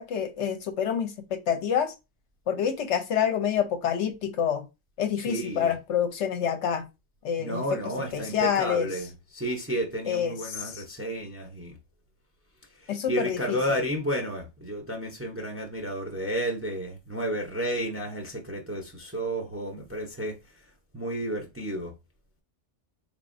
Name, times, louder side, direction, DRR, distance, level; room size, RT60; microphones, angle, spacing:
voice 1, 0.0-1.9 2.5-4.6 5.0-6.8 7.2-7.6 8.1-8.9 10.1-10.8 12.9-13.6, left 8 dB, 70° left, 0.9 m, -27 dB
voice 2, 5.2-5.7 7.4-11.8 12.8-20.4 20.9-21.9, equal, 15° right, 0.6 m, -32 dB
3.9 x 3.3 x 2.6 m
omnidirectional pair, 1.3 m